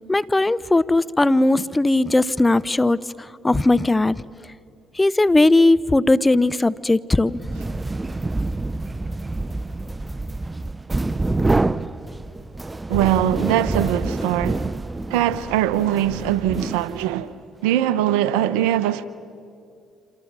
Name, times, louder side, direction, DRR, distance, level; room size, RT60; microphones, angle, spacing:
voice 1, 0.1-3.0 3.4-4.2 5.0-7.4, left 2 dB, 20° left, 0.8 m, -18 dB
sound 1, 7.3-17.3, right 2 dB, 20° right, 0.7 m, -27 dB
voice 2, 12.9-14.7 15.1-17.3 17.6-19.1, right 12 dB, 80° right, 0.9 m, -21 dB
27.5 x 27.0 x 7.5 m
hypercardioid pair, 55°, 0 cm